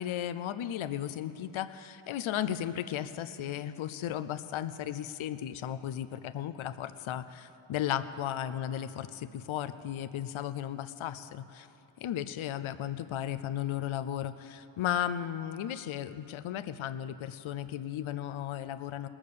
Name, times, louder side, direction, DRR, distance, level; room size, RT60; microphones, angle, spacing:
voice 1, 0.0-11.7 12.0-19.1, left 10 dB, 75° left, 13 dB, 0.6 m, -35 dB
20.0 x 7.3 x 6.7 m, 2.8 s
wide cardioid pair, 90°, 49 cm